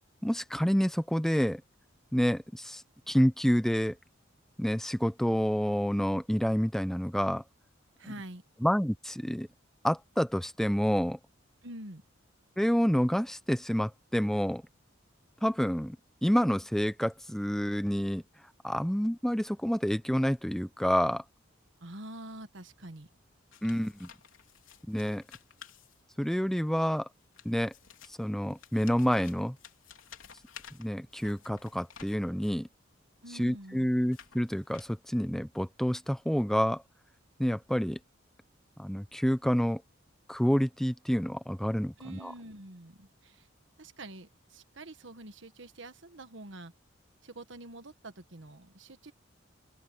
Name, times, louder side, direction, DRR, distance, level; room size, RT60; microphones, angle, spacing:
voice 1, 0.2-1.6 2.1-4.0 4.6-7.4 8.6-9.5 9.8-11.2 12.6-14.6 15.4-16.0 16.2-18.2 18.6-21.2 23.6-24.1 24.9-25.2 26.2-27.1 27.4-27.7 28.2-29.6 30.8-32.7 33.4-36.8 37.4-38.0 38.8-39.8 40.3-42.3, equal, ahead, 0.8 m, -28 dB
voice 2, 8.0-8.4 11.6-12.0 21.8-23.1 33.2-33.9 42.0-43.5 43.8-46.7 47.2-49.1, right 1 dB, 65° right, 1.6 m, -46 dB
sound 1, 23.5-26.4 27.1-32.7 33.3-35.2, left 8 dB, 85° left, 3.7 m, -54 dB
open air
head